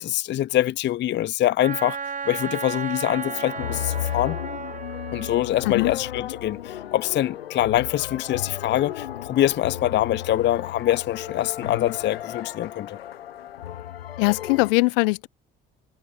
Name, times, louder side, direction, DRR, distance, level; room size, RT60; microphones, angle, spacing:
voice 1, 0.0-2.0 2.3-4.4 5.1-13.0, left 13 dB, 40° left, 0.6 m, -24 dB
Wind instrument woodwind instrument, 1.6-5.5, right 5 dB, 25° right, 1.8 m, -33 dB
sound 1, 3.1-14.7, left 11 dB, 85° left, 0.5 m, -34 dB
voice 2, 14.2-15.3, left 27 dB, 70° left, 0.9 m, -21 dB
figure-of-eight pair, 55°, 29 cm